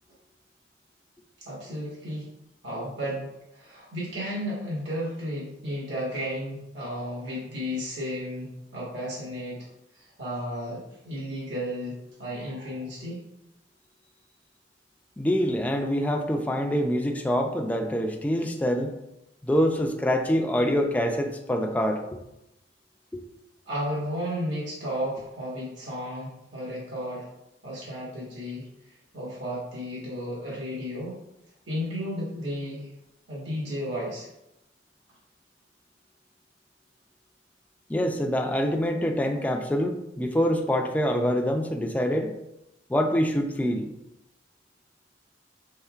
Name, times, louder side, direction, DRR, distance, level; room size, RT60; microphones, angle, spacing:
voice 1, 1.4-2.3 2.6-9.6 9.9-13.2 23.7-27.3 27.6-31.2 31.7-32.9 33.3-34.3, equal, 75° right, -6 dB, 1.4 m, -33 dB
voice 2, 15.2-18.9 19.4-22.0 23.1-23.2 37.9-42.4 42.9-43.9, equal, 10° left, 4 dB, 0.3 m, -25 dB
5.5 x 3.5 x 2.4 m, 0.87 s
head